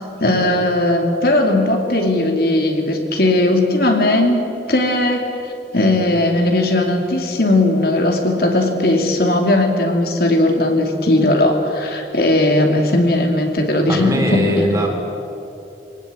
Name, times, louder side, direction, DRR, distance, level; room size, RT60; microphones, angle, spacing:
voice 1, 0.2-4.4 4.7-14.7, left 1 dB, 60° left, 2 dB, 2.6 m, -17 dB
voice 2, 13.9-14.9, equal, 20° right, 1 dB, 3.9 m, -20 dB
24.0 x 18.5 x 8.5 m, 2.9 s
head